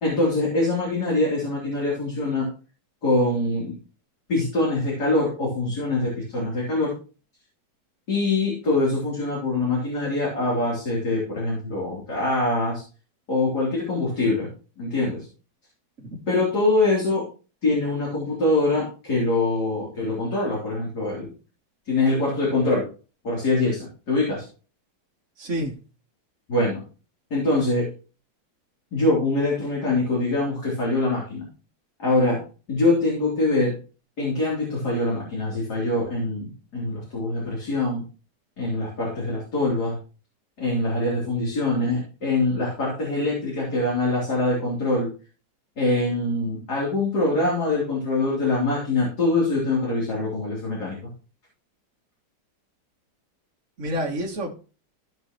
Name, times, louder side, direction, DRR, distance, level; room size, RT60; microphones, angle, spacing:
voice 1, 0.0-2.5 3.0-3.8 4.3-6.9 8.1-12.8 13.3-14.5 14.8-15.3 16.3-17.3 17.6-21.3 21.9-22.8 23.2-24.4 26.5-26.8 27.3-27.8 28.9-31.5 32.0-32.4 32.7-33.7 34.2-38.0 38.6-40.0 40.6-45.1 45.8-51.1, left 2 dB, 50° left, 4.0 m, -24 dB
voice 2, 25.4-25.7 53.8-54.5, equal, 40° right, 1.8 m, -28 dB
15.5 x 6.4 x 3.1 m
omnidirectional pair, 2.2 m